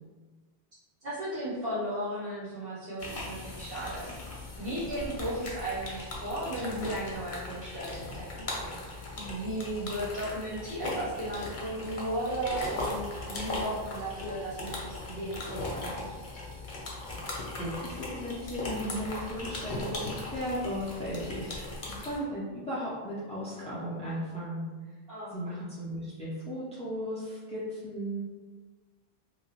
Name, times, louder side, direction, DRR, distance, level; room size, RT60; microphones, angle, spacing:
voice 1, 1.0-8.8 9.1-16.0 25.1-25.3, right 1 dB, 65° right, -14 dB, 1.3 m, -35 dB
sound 1, 3.0-22.2, left 2 dB, 55° left, 0.8 m, -38 dB
voice 2, 17.5-24.7 25.3-28.2, equal, 10° left, -9 dB, 0.3 m, -36 dB
2.8 x 2.7 x 2.8 m, 1.4 s
omnidirectional pair, 1.1 m